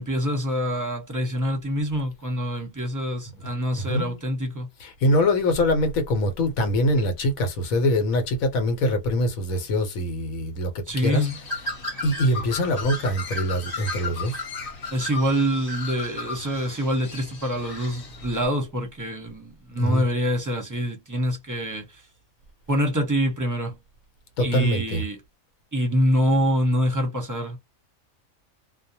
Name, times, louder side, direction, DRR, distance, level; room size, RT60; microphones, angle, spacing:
voice 1, 0.0-4.7 10.9-11.3 14.9-22.0 22.7-23.8 24.4-25.2 25.7-27.6, equal, 20° right, 0.6 m, -25 dB
voice 2, 3.9-4.2 4.8-11.3 12.0-14.3 19.8-20.0 24.4-25.0, left 1 dB, 80° left, 1.2 m, -23 dB
Bird, 11.0-18.5, left 2 dB, 45° left, 1.1 m, -35 dB
2.5 x 2.1 x 2.7 m
omnidirectional pair, 1.4 m